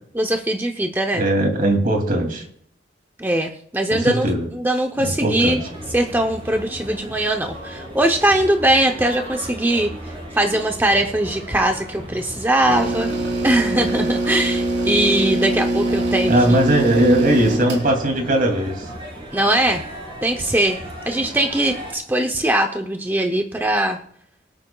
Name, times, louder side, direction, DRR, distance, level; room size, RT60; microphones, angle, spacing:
voice 1, 0.1-1.2 3.2-5.6 5.9-13.1 13.4-16.6 19.3-19.8 20.2-20.8 21.1-24.0, right 1 dB, 10° right, 3 dB, 0.7 m, -21 dB
voice 2, 1.1-2.4 3.9-4.5 5.0-5.6 16.3-18.9, right 1 dB, 50° right, 2 dB, 2.7 m, -19 dB
sound 1, 5.3-21.9, equal, 30° right, 4.8 m, -36 dB
sound 2, 12.7-17.9, right 2 dB, 90° right, 3.4 m, -23 dB
24.5 x 8.8 x 2.3 m, 0.67 s
head